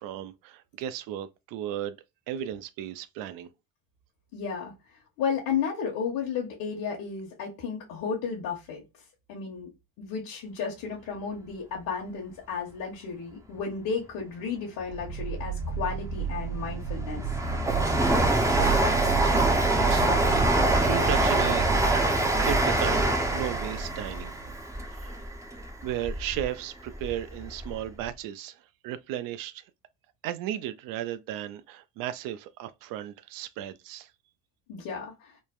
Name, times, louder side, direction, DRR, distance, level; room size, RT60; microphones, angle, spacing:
voice 1, 0.0-2.0 2.3-3.5 19.8-21.7 22.4-24.3 24.9-25.2 25.8-29.6 30.2-34.1, right 11 dB, 75° right, 0.5 m, -35 dB
voice 2, 4.3-4.7 5.2-8.8 9.3-9.7 10.0-17.2 34.7-35.3, left 6 dB, 70° left, 1.0 m, -33 dB
sound 1, 14.8-24.6, right 5 dB, 45° right, 1.1 m, -33 dB
Train, 16.3-26.4 26.9-27.8 28.0-28.1, right 2 dB, 10° right, 0.5 m, -25 dB
3.2 x 2.1 x 2.3 m
cardioid pair, 115°, 34 cm